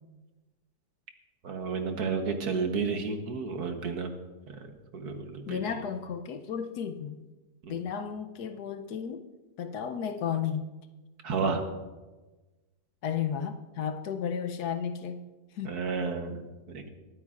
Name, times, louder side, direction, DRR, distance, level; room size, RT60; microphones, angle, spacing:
voice 1, 1.4-4.1 4.5-5.7 7.6-7.7 11.2-11.6 15.6-16.4 16.7-16.9, right 5 dB, 65° right, 5 dB, 1.6 m, -32 dB
voice 2, 5.5-7.2 7.7-9.2 9.6-10.7 13.0-15.2 15.5-15.8, left 7 dB, 70° left, 8 dB, 1.2 m, -33 dB
22.0 x 9.5 x 2.5 m, 1.2 s
omnidirectional pair, 1.9 m